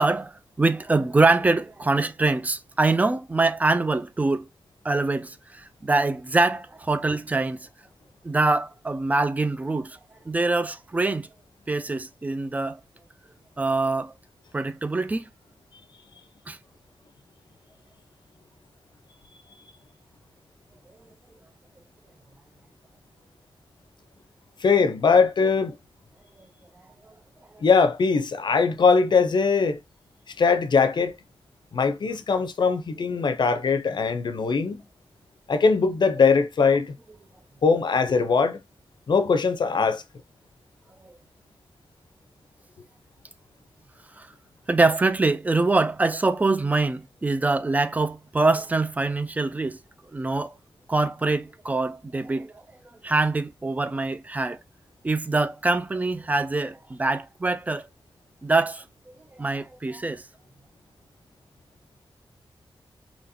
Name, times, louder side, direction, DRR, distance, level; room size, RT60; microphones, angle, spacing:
voice 1, 0.0-4.5 4.8-7.7 8.2-10.0 10.3-11.3 11.7-12.8 13.6-14.1 14.5-15.3 16.5-16.6 41.0-41.1 44.2-44.3 44.7-49.8 50.1-50.5 50.9-52.6 53.0-54.6 55.0-57.8 58.4-58.8 59.4-60.2, right 3 dB, 15° right, 0.3 m, -24 dB
voice 2, 24.6-25.7 27.6-29.8 30.4-31.2 31.7-34.8 35.5-36.9 37.6-38.6 39.1-40.0, left 5 dB, 55° left, 0.6 m, -21 dB
4.1 x 2.9 x 2.6 m
wide cardioid pair, 180°, 9 cm